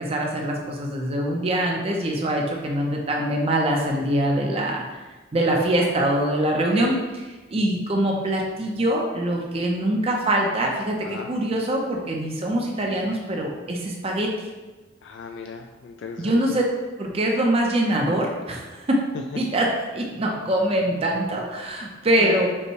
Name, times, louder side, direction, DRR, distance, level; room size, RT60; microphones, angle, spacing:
voice 1, 0.0-4.8 5.3-7.0 7.5-14.3 16.2-16.6 17.0-19.0 19.4-19.7 19.9-22.5, right 1 dB, 30° right, 0 dB, 0.5 m, -23 dB
voice 2, 15.0-16.4 22.2-22.4, left 5 dB, 65° left, 3 dB, 0.3 m, -36 dB
5.3 x 2.1 x 4.6 m, 1.2 s
head